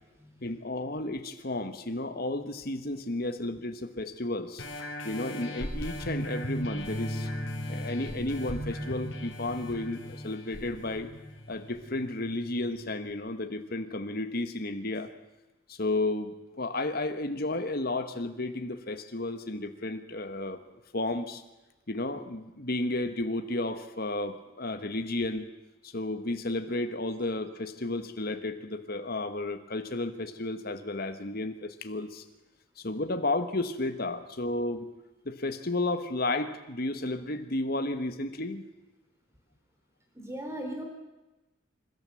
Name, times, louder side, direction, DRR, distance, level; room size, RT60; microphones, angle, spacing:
voice 1, 0.4-4.6 5.0-7.3 7.7-11.1 11.5-15.1 15.7-20.6 20.9-21.4 21.9-25.5 25.8-32.2 32.8-34.9 35.2-38.6, left 2 dB, 50° left, 8 dB, 1.5 m, -32 dB
sound 1, 4.6-11.8 12.3-12.4, equal, 70° left, 4.9 m, -38 dB
Bass guitar, 6.9-13.1, equal, 30° left, 2.0 m, -41 dB
voice 2, 40.1-40.8, right 1 dB, 15° right, 2 dB, 4.0 m, -38 dB
27.0 x 13.0 x 7.8 m, 1.1 s
head